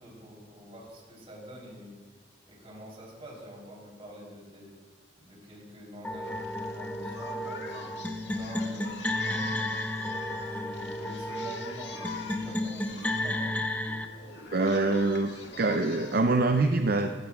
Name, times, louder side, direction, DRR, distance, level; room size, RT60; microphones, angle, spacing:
voice 1, 0.0-2.0 2.5-4.8 5.2-9.8 10.4-13.4 14.3-14.5, equal, 35° right, -3 dB, 3.5 m, -47 dB
sound 1, 6.0-14.1, left 1 dB, 10° left, 0.5 m, -33 dB
Singing, 6.2-16.2, left 4 dB, 75° left, 1.8 m, -44 dB
voice 2, 14.5-17.1, right 3 dB, 55° right, 5 dB, 0.6 m, -25 dB
16.5 x 15.0 x 2.4 m, 1.4 s
head